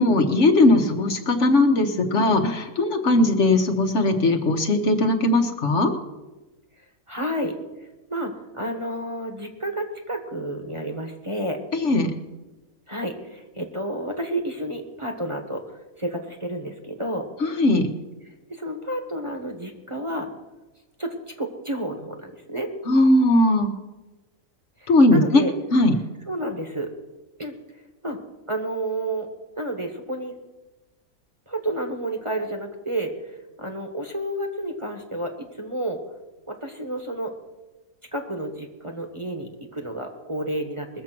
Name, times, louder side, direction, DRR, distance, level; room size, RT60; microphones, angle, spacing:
voice 1, 0.0-5.9 11.7-12.1 17.4-17.9 22.9-23.7 24.9-25.4 25.7-25.9, left 2 dB, 55° left, 5 dB, 1.4 m, -19 dB
voice 2, 7.1-7.5 8.1-11.6 12.9-15.6 16.0-17.3 18.5-20.3 21.0-22.7 24.8-25.5 26.3-26.9 27.4-27.5 28.0-28.2 28.5-29.3 29.6-30.3 31.5-33.1 33.6-36.0 36.5-37.3 38.1-41.0, right 1 dB, 20° right, 3 dB, 1.3 m, -30 dB
21.0 x 7.4 x 6.0 m, 1.1 s
omnidirectional pair, 1.5 m